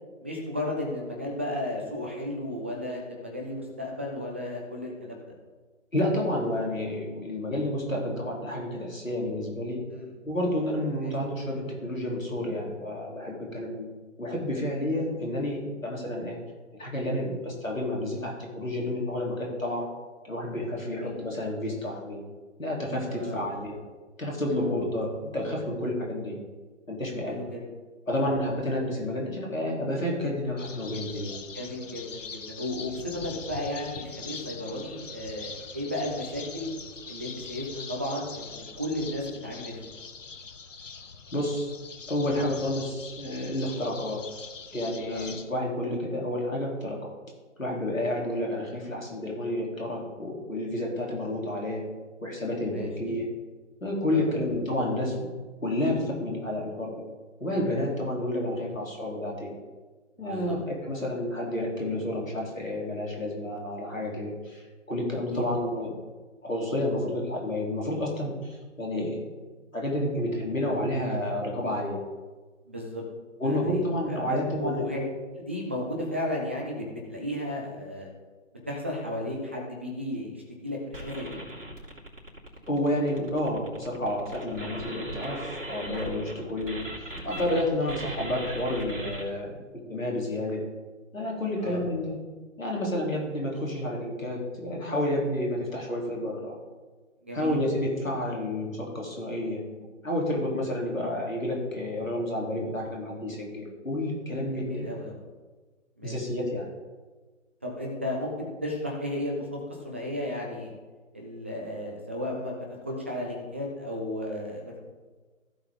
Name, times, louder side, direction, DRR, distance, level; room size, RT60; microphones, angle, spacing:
voice 1, 0.2-5.3 9.9-10.1 11.0-11.1 20.9-21.1 23.1-23.6 24.6-24.7 27.3-27.6 28.1-28.2 31.5-36.7 37.1-39.9 45.1-45.3 52.7-53.2 54.1-54.4 60.2-60.5 65.3-65.5 72.7-73.0 73.4-73.8 74.1-75.0 75.4-78.1 78.7-81.4 84.5-84.6 91.6-91.8 97.2-97.6 104.5-105.2 106.0-106.1 107.6-109.6 109.8-110.7 111.1-114.8, left 1 dB, 10° right, -1 dB, 0.5 m, -34 dB
voice 2, 5.9-9.9 10.2-13.9 14.2-16.4 16.8-19.9 20.2-22.2 22.6-23.7 24.2-26.4 26.9-27.4 28.1-31.4 41.3-41.7 42.1-44.3 44.7-47.1 47.6-51.9 52.2-53.3 53.8-55.2 55.6-57.0 57.4-59.5 60.2-66.0 66.4-69.2 69.7-72.0 73.4-74.9 82.7-89.6 89.9-90.7 91.1-92.1 92.6-96.6 97.3-99.6 100.0-104.8 106.0-106.7, left 1 dB, 85° left, -2 dB, 3.3 m, -30 dB
sound 1, 30.6-45.5, left 5 dB, 70° left, 1.0 m, -42 dB
sound 2, 80.9-87.6 87.9-89.2, right 1 dB, 70° right, 2.9 m, -38 dB
15.5 x 6.0 x 3.7 m, 1.3 s
figure-of-eight pair, 140°, 39 cm